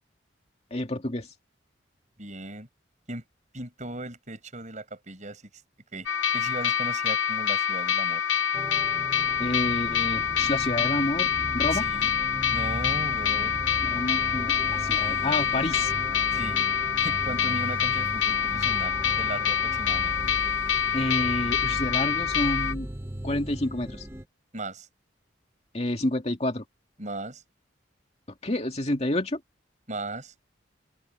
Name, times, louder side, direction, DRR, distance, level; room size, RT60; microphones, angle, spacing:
voice 1, 0.7-1.3 9.4-11.9 13.8-15.9 20.9-22.9 23.2-24.1 25.7-26.6 28.4-29.4, left 1 dB, 35° left, 2.5 m, -29 dB
voice 2, 2.2-2.7 3.1-3.3 3.5-5.4 5.9-6.1 6.3-8.2 11.7-12.1 12.5-13.5 16.3-16.6 17.0-20.2 24.5-24.9 27.0-27.4 29.9-30.3, right 2 dB, 40° right, 7.6 m, -37 dB
sound 1, 6.1-22.7, left 8 dB, 90° left, 1.0 m, -26 dB
sound 2, 8.5-24.2, equal, 10° right, 1.0 m, -37 dB
head